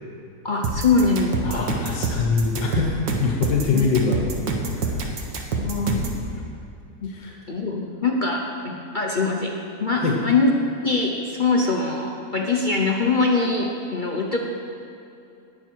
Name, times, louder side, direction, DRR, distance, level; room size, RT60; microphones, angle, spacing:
voice 1, 0.4-1.7 3.7-3.9 5.5-6.0 7.0-7.1 7.5-10.5 10.8-14.4, left 3 dB, 45° left, -1 dB, 0.6 m, -23 dB
sound 1, 0.6-6.2, right 3 dB, 80° right, 1.8 m, -26 dB
voice 2, 1.4-4.2 4.7-5.3 7.0-7.4 10.0-10.2, left 4 dB, 85° left, 0 dB, 1.9 m, -24 dB
19.0 x 6.9 x 4.6 m, 2.7 s
omnidirectional pair, 1.9 m